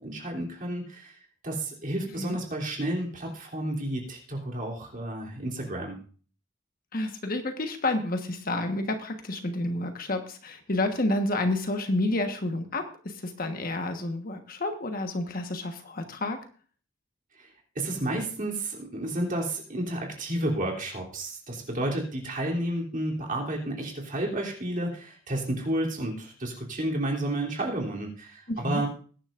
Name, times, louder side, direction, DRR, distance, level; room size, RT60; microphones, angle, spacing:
voice 1, 0.0-1.1 1.4-6.0 17.4-17.5 17.7-28.9, right 1 dB, 45° right, -1 dB, 3.1 m, -31 dB
voice 2, 6.9-16.4 28.5-28.8, left 2 dB, 50° left, 6 dB, 1.3 m, -30 dB
20.5 x 10.5 x 2.6 m, 0.41 s
head